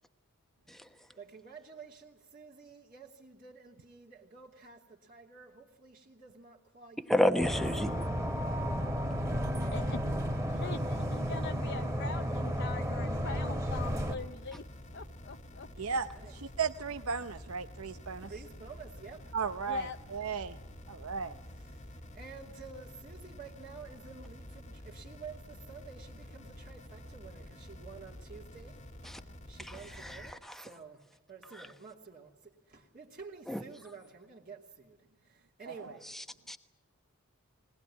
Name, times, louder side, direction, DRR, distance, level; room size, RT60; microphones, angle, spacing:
voice 1, 1.1-7.1 7.4-7.5 15.7-16.3 18.2-19.3 21.5-36.1, right 5 dB, 40° right, -3 dB, 2.6 m, -51 dB
voice 2, 7.1-7.9 29.1-29.2 29.6-30.7 33.5-33.6 36.1-36.6, equal, ahead, 7 dB, 1.1 m, -31 dB
sound 1, 7.4-14.1, equal, 15° right, 2.4 m, -33 dB
voice 3, 9.6-10.1 10.5-14.6 14.9-16.0 19.7-20.0, left 5 dB, 55° left, 6 dB, 0.8 m, -43 dB
sound 2, 13.7-30.3, left 1 dB, 35° left, 1.6 m, -49 dB
voice 4, 15.8-18.3 19.3-20.6 20.9-21.4 35.8-35.9, right 5 dB, 80° right, 9 dB, 0.7 m, -35 dB
21.5 x 19.5 x 9.8 m, 1.0 s
head